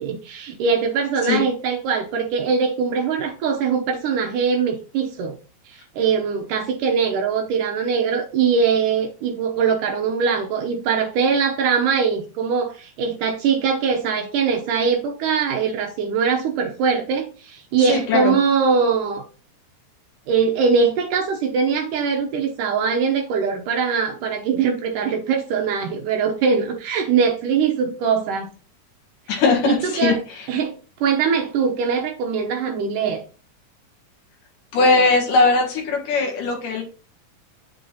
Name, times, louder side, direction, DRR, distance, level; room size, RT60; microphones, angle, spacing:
voice 1, 0.0-5.3 5.7-19.2 20.3-28.5 29.6-30.2 30.5-30.7 31.0-33.2, right 6 dB, 75° right, 3 dB, 2.4 m, -22 dB
voice 2, 17.8-18.4 29.3-30.5 34.7-36.8, left 3 dB, 75° left, 0 dB, 3.1 m, -19 dB
8.7 x 7.0 x 2.8 m, 0.36 s
omnidirectional pair, 3.8 m